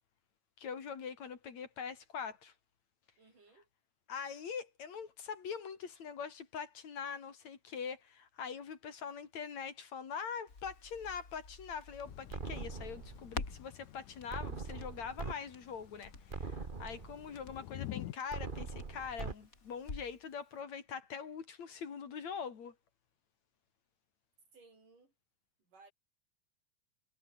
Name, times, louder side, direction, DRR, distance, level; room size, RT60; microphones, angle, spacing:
voice 1, 0.6-2.5 4.1-22.8, left 6 dB, 60° left, 3.9 m, -43 dB
voice 2, 3.2-3.7 24.5-25.1 25.6-25.9, right 3 dB, 85° right, 9.2 m, -61 dB
Crackle, 10.5-20.3 20.6-20.7, left 3 dB, 25° left, 3.3 m, -50 dB
Thunder / Rain, 12.0-18.1, left 14 dB, 80° left, 2.5 m, -50 dB
sound 1, 12.3-13.3 14.3-15.3 15.8-15.9 16.3-17.3 18.3-19.3, right 4 dB, 35° right, 0.8 m, -42 dB
omnidirectional pair, 3.6 m